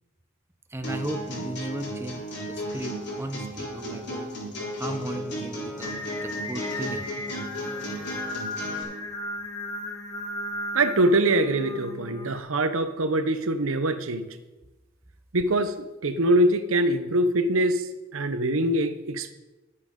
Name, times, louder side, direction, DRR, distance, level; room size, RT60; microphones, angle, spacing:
voice 1, 0.7-2.2 2.5-4.3 4.8-7.1 8.9-9.0, right 1 dB, 10° right, 7 dB, 0.6 m, -36 dB
sound 1, 0.8-8.8, equal, 55° left, 4.0 m, -34 dB
Singing, 5.8-12.4, left 1 dB, 20° left, 0.8 m, -35 dB
voice 2, 10.7-14.3 15.3-15.7 16.0-17.9 18.1-19.3, right 1 dB, 80° right, 10 dB, 0.8 m, -23 dB
11.5 x 8.5 x 5.3 m, 1.1 s
head